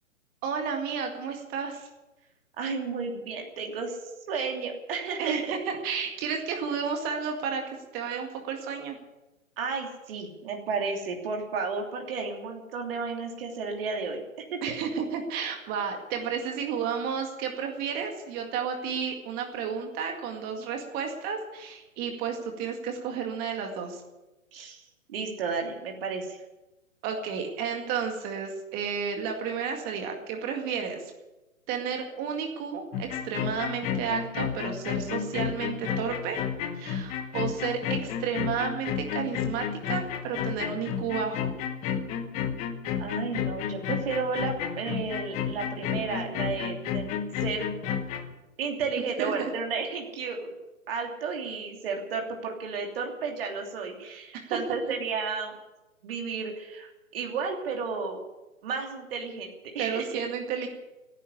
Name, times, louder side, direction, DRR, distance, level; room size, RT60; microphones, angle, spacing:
voice 1, 0.4-1.9 5.2-5.6 5.8-9.0 14.6-24.0 27.0-31.1 31.7-36.4 36.8-41.5 49.0-49.5 54.3-54.6 59.8-60.7, right 6 dB, 20° right, 3 dB, 2.0 m, -32 dB
voice 2, 2.6-4.0 4.3-5.3 9.6-14.2 14.5-14.7 24.5-24.8 25.1-26.4 43.0-47.7 48.6-50.5 50.9-55.6 56.0-58.2 58.6-60.0, right 5 dB, 45° right, 1 dB, 3.0 m, -33 dB
sound 1, 32.9-48.2, left 8 dB, 15° left, 1.0 m, -31 dB
16.5 x 10.0 x 8.4 m, 1.0 s
figure-of-eight pair, 130°, 41 cm